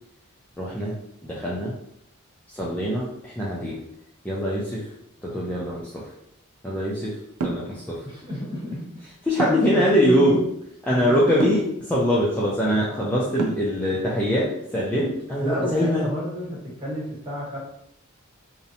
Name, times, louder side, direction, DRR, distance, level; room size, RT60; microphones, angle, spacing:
voice 1, 0.6-1.0 1.2-1.7 2.5-3.8 4.2-4.9 5.2-6.0 6.6-7.1 7.4-8.0 9.2-10.4 10.8-11.6 11.9-16.1, equal, 5° left, -6 dB, 0.3 m, -23 dB
sound 1, 7.4-7.7 9.4-9.8 11.4-11.7 13.4-13.8, right 3 dB, 75° right, 0.4 m, -27 dB
voice 2, 8.0-8.8 9.4-10.4 10.9-11.4 15.4-17.6, equal, 25° right, -6 dB, 1.0 m, -31 dB
2.6 x 2.0 x 2.6 m, 0.75 s
head